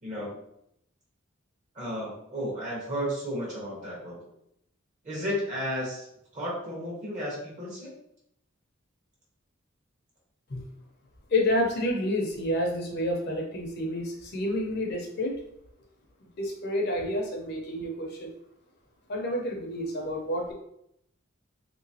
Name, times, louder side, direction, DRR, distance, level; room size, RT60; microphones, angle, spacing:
voice 1, 0.0-0.3 1.7-4.2 5.0-6.1 6.3-7.9, equal, 40° right, -4 dB, 1.2 m, -33 dB
voice 2, 11.3-15.4 16.4-18.3 19.1-20.5, left 1 dB, 55° left, 1 dB, 0.7 m, -29 dB
3.2 x 3.0 x 2.7 m, 0.74 s
head